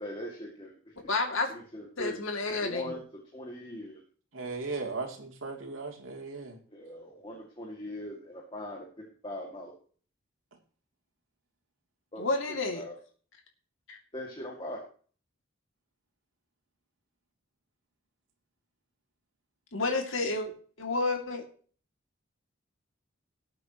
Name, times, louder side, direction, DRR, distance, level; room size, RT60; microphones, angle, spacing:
voice 1, 0.0-1.1 1.5-2.2 2.5-3.0 3.3-4.0 6.7-9.7 12.1-12.3 12.7-13.0 14.1-14.8, left 1 dB, 25° left, -1 dB, 2.2 m, -41 dB
voice 2, 1.1-1.5 2.0-3.0 12.2-12.8 13.9-14.0 19.7-20.5 20.8-21.4, left 3 dB, 80° left, 3 dB, 2.5 m, -30 dB
voice 3, 4.3-6.6, right 3 dB, 85° right, 2 dB, 3.0 m, -37 dB
18.5 x 8.3 x 3.0 m, 0.43 s
head